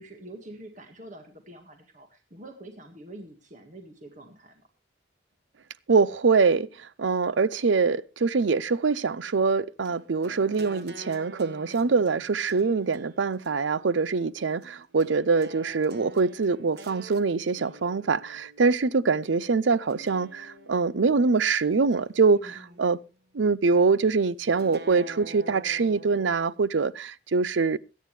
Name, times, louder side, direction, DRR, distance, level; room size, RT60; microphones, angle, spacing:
voice 1, 0.0-4.7 22.3-22.8, right 1 dB, 40° right, 1.8 m, -46 dB
voice 2, 5.9-23.0 23.3-27.8, right 4 dB, 80° right, 0.6 m, -24 dB
sound 1, 9.9-19.3 19.9-21.5 21.9-23.0 24.6-26.5, right 1 dB, 60° right, 1.4 m, -48 dB
22.0 x 9.4 x 3.2 m
head